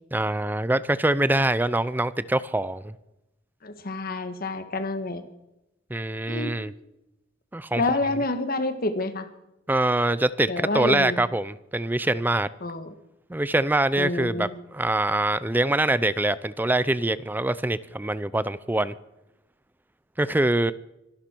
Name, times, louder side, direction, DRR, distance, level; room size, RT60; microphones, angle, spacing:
voice 1, 0.1-2.9 5.9-6.7 7.5-7.8 9.7-12.5 13.3-18.9 20.2-20.7, right 1 dB, 10° right, 0.4 m, -24 dB
voice 2, 3.6-5.2 6.3-6.5 7.8-9.3 10.5-11.2 12.6-12.9 14.0-14.6, left 2 dB, 45° left, 1.5 m, -28 dB
25.0 x 11.5 x 4.5 m
head